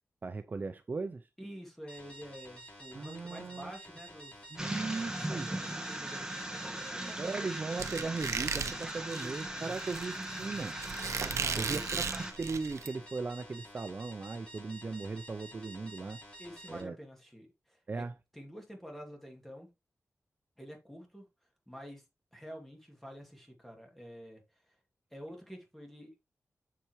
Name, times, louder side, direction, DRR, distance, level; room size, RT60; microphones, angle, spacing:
voice 1, 0.2-1.3 2.9-3.7 4.5-5.5 7.2-10.8 11.6-16.2 16.7-17.0 17.9-18.1, right 4 dB, 35° right, 0.5 m, -38 dB
voice 2, 1.4-7.5 9.0-9.9 11.3-11.8 16.4-18.0 18.3-19.7 20.6-21.3 21.7-22.0 22.3-24.4 25.1-26.1, equal, 5° left, 2.4 m, -48 dB
sound 1, 1.9-16.8, right 1 dB, 20° left, 3.9 m, -51 dB
sound 2, 4.6-12.3, right 1 dB, 10° right, 1.4 m, -39 dB
Squeak, 7.8-12.9, right 6 dB, 75° right, 0.6 m, -36 dB
7.5 x 6.8 x 3.1 m
wide cardioid pair, 155°, 5 cm